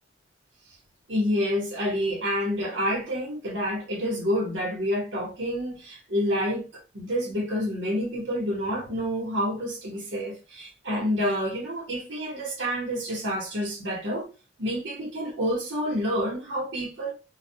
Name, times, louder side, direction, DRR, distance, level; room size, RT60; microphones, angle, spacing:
voice 1, 1.1-14.3 14.6-17.1, equal, 85° right, 1.0 m, -28 dB
2.2 x 2.1 x 2.7 m
head